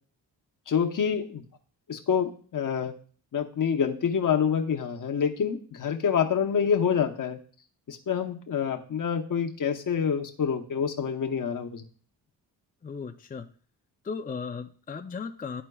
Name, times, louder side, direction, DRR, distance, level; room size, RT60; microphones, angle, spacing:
voice 1, 0.7-1.4 1.9-2.9 3.3-7.4 7.9-11.8, left 7 dB, 55° left, 4 dB, 1.0 m, -27 dB
voice 2, 12.8-13.5 14.0-15.6, left 5 dB, 25° left, 5 dB, 0.4 m, -36 dB
12.5 x 4.4 x 2.3 m, 0.43 s
cardioid pair, 95°, 39 cm